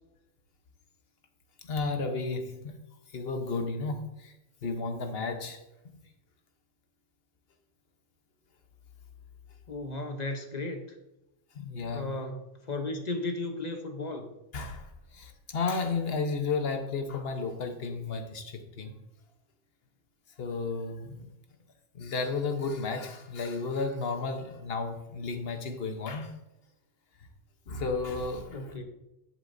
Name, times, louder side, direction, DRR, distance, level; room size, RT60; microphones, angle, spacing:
voice 1, 1.7-2.8 3.1-4.3 4.6-5.6 11.5-12.1 14.5-14.9 15.1-18.9 20.4-21.2 21.9-26.3 27.7-28.6, left 4 dB, 55° left, 6 dB, 1.3 m, -33 dB
voice 2, 9.7-10.9 11.8-14.3 28.5-28.8, left 2 dB, 35° left, 4 dB, 1.0 m, -35 dB
11.0 x 8.2 x 2.7 m, 0.93 s
omnidirectional pair, 1.2 m